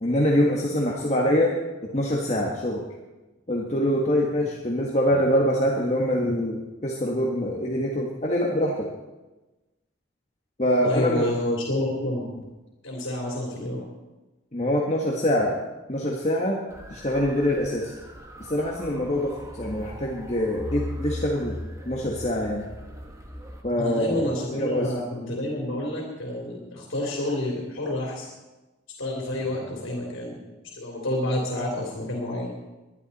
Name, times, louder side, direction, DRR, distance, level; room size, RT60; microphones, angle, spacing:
voice 1, 0.0-1.5 1.8-2.8 3.5-8.9 10.6-11.2 14.5-15.6 15.9-16.6 16.9-17.9 18.4-21.6 21.8-22.6 23.6-24.9, equal, 35° left, -2 dB, 1.5 m, -24 dB
voice 2, 10.8-12.4 12.8-13.8 23.8-28.3 29.0-30.4 30.7-32.6, left 1 dB, 80° left, -2 dB, 3.2 m, -29 dB
sound 1, 16.7-23.6, left 1 dB, 15° right, 1.5 m, -38 dB
22.0 x 11.5 x 4.2 m, 1.1 s
head